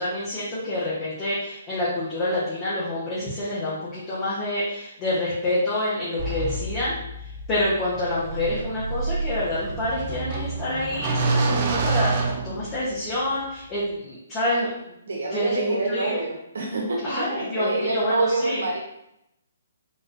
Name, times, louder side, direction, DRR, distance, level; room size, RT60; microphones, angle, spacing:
voice 1, 0.0-7.0 7.5-14.7 15.3-16.2 17.0-18.6, left 1 dB, 20° left, -9 dB, 0.9 m, -27 dB
sound 1, 6.2-13.1, right 3 dB, 40° right, 0.5 m, -28 dB
voice 2, 15.1-18.8, right 2 dB, 80° right, 0 dB, 1.0 m, -26 dB
3.9 x 2.5 x 2.5 m, 0.82 s
hypercardioid pair, 150°, 0 cm